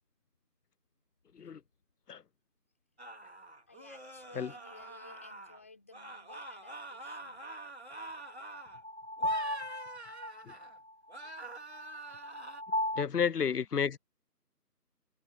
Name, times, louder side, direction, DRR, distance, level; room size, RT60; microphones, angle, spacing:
sound 1, 3.0-5.6 5.9-8.8 9.2-10.8 11.1-12.6, right 2 dB, 40° right, 2.4 m, -46 dB
voice 1, 3.7-7.4, left 3 dB, 10° left, 4.7 m, -56 dB
sound 2, 6.3-6.4 8.2-13.0, left 1 dB, 45° left, 3.7 m, -36 dB
voice 2, 13.0-14.0, left 7 dB, 70° left, 0.6 m, -31 dB
figure-of-eight pair, 175°, 49 cm